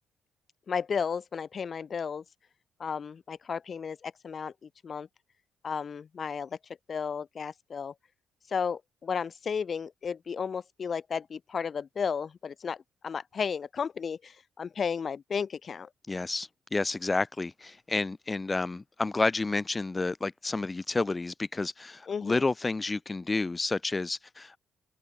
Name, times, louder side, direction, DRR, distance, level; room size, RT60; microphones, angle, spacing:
voice 1, 0.7-2.2 2.8-5.1 5.6-6.6 6.9-7.9 8.5-15.9 22.1-22.4, left 6 dB, 45° left, 7.7 m, -33 dB
voice 2, 16.1-24.5, left 3 dB, 20° left, 3.8 m, -30 dB
open air
cardioid pair, 90°, 0 cm